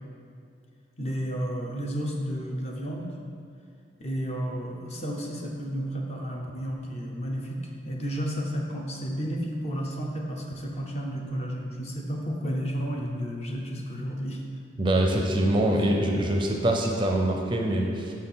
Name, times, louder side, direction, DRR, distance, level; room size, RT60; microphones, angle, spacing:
voice 1, 1.0-3.1 4.0-14.4, equal, 35° left, 0 dB, 0.8 m, -32 dB
voice 2, 14.8-18.1, right 1 dB, 25° right, 1 dB, 0.5 m, -24 dB
6.5 x 4.4 x 5.6 m, 2.3 s
head